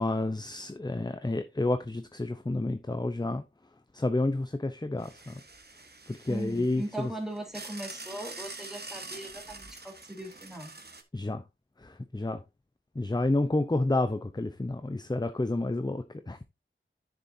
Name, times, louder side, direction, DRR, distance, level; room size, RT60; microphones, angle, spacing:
voice 1, 0.0-3.4 3.9-5.4 6.1-7.1 11.1-11.4 11.8-12.4 12.9-16.4, left 2 dB, 20° left, 0.7 m, -30 dB
sound 1, 5.0-11.0, right 3 dB, 50° right, 1.3 m, -45 dB
voice 2, 6.3-10.7, right 1 dB, ahead, 3.5 m, -39 dB
10.0 x 6.8 x 2.7 m
wide cardioid pair, 50°, 21 cm